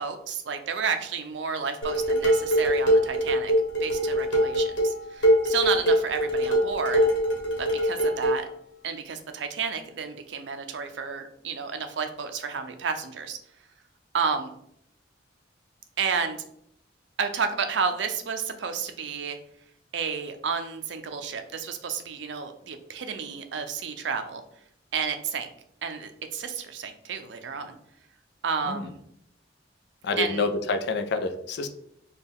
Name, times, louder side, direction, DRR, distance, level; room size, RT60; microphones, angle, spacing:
voice 1, 0.0-3.5 3.8-7.1 7.6-8.5 8.8-13.4 14.1-14.5 16.0-16.4 17.2-19.4 19.9-24.4 24.9-25.5 25.8-27.8 28.4-29.0 30.2-30.5, right 6 dB, 70° right, 7 dB, 0.5 m, -31 dB
Dishes pots and pans, 1.8-8.4, equal, 80° left, 1.1 m, -23 dB
voice 2, 30.0-31.7, left 3 dB, 65° left, 7 dB, 0.4 m, -28 dB
4.2 x 2.3 x 3.4 m, 0.72 s
head